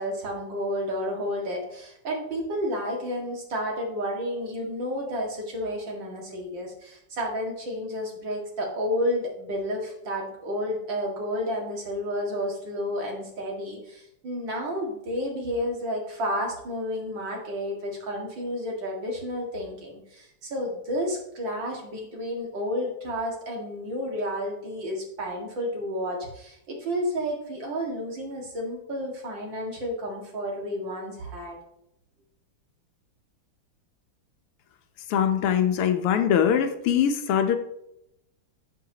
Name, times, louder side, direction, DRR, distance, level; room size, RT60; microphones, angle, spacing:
voice 1, 0.0-31.6, equal, 55° right, -1 dB, 2.7 m, -31 dB
voice 2, 35.1-37.6, left 8 dB, 85° left, 7 dB, 1.8 m, -22 dB
12.0 x 7.3 x 2.9 m, 0.80 s
omnidirectional pair, 2.4 m